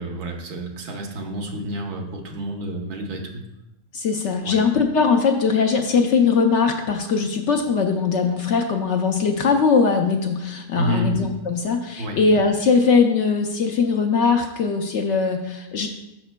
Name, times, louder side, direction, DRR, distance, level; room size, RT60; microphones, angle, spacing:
voice 1, 0.0-3.4 4.4-4.6 10.7-11.1 12.0-12.2, right 1 dB, 80° right, 2 dB, 1.4 m, -29 dB
voice 2, 3.9-15.9, left 5 dB, 65° left, 4 dB, 0.7 m, -20 dB
10.5 x 4.9 x 2.2 m, 0.92 s
omnidirectional pair, 1.6 m